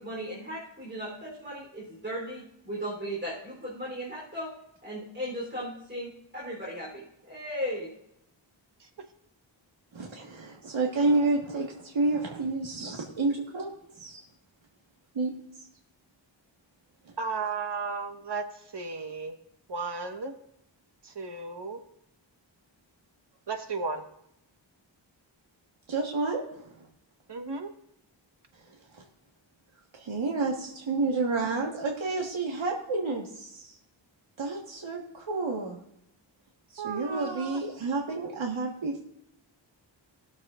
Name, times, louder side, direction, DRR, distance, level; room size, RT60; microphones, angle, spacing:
voice 1, 0.0-4.5 4.8-7.9, equal, 25° right, -4 dB, 3.5 m, -36 dB
voice 2, 9.9-14.2 15.2-15.3 17.1-17.2 25.9-26.9 28.9-29.0 29.9-33.8 34.4-35.8 36.7-39.0, right 3 dB, 80° right, 0 dB, 1.6 m, -30 dB
voice 3, 17.2-18.4 18.7-19.3 19.7-20.3 21.0-21.8 23.5-24.0 27.3-27.7 36.8-37.6, right 4 dB, 60° right, 5 dB, 1.4 m, -34 dB
20.0 x 7.3 x 2.5 m, 0.78 s
wide cardioid pair, 75°, 46 cm